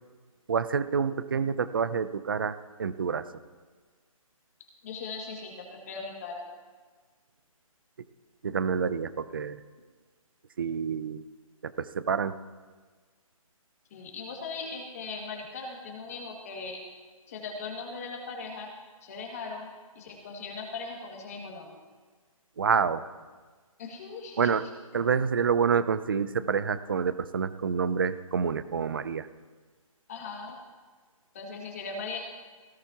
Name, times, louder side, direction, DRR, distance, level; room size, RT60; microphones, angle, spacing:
voice 1, 0.5-3.3 8.4-9.6 10.6-11.2 11.6-12.3 22.6-23.0 24.4-24.6 24.9-29.3, right 6 dB, 40° right, 14 dB, 0.6 m, -28 dB
voice 2, 4.8-6.4 13.9-16.8 17.3-18.7 19.0-19.7 20.0-21.7 23.8-24.5 30.1-30.6 31.3-32.2, left 4 dB, 25° left, 0 dB, 2.1 m, -39 dB
17.5 x 16.5 x 2.9 m, 1.4 s
hypercardioid pair, 175°, 18 cm